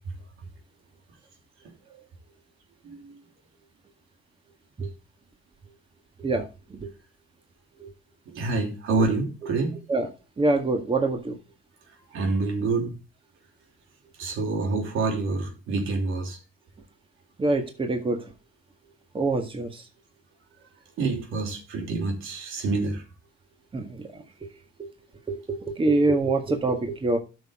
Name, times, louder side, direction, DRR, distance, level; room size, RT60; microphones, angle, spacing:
voice 1, 8.3-9.8 12.1-12.9 14.2-16.4 21.0-23.0, right 3 dB, 85° right, 2.9 m, -27 dB
voice 2, 10.4-11.4 17.4-18.2 19.1-19.8 23.7-24.1 24.8-24.9 25.3-25.4 25.8-27.2, right 2 dB, 25° right, 1.7 m, -24 dB
12.5 x 6.2 x 3.7 m
cardioid pair, 90°, 20 cm